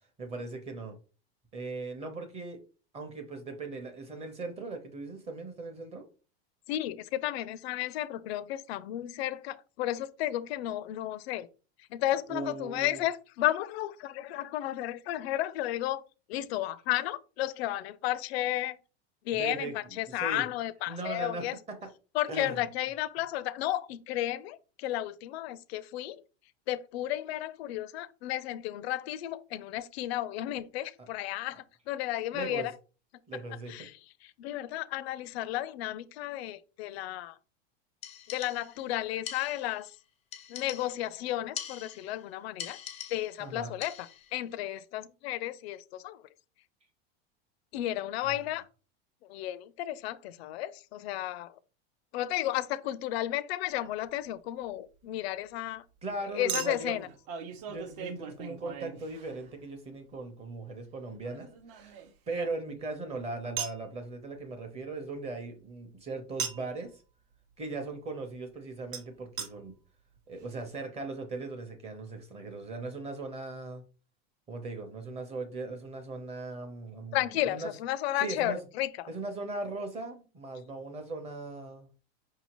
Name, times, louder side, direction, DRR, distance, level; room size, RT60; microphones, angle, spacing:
voice 1, 0.2-1.0 1.5-2.6 2.9-6.1 12.3-13.0 19.3-20.4 20.9-21.9 22.3-22.6 32.3-32.7 33.3-33.9 43.4-43.7 48.2-48.4 56.0-57.1 57.7-61.5 61.8-62.0 62.3-67.0 67.6-69.7 70.3-73.8 74.5-77.7 78.2-78.6 79.1-81.9, right 3 dB, 20° right, 0.7 m, -39 dB
voice 2, 6.7-11.5 11.9-16.0 16.3-18.8 19.3-21.6 22.1-26.2 26.7-32.7 33.7-34.0 34.4-37.4 38.3-39.9 40.5-42.8 43.1-46.2 47.7-48.7 49.3-51.5 52.1-55.8 56.3-57.1 77.1-78.9, left 14 dB, 80° left, 0.5 m, -33 dB
sound 1, 38.0-38.9 39.3-39.9 40.3-41.2 41.6-42.2 42.6-43.5 43.8-44.3, left 9 dB, 20° left, 0.4 m, -43 dB
Chink clink, 53.7-53.8 56.5-59.7 61.2-62.9 63.6-63.8 66.4-66.8 68.9-69.0 69.4-69.5 70.2-70.3 70.4-70.5, right 7 dB, 55° right, 0.8 m, -39 dB
5.2 x 2.7 x 2.9 m
supercardioid pair, 145°, 31 cm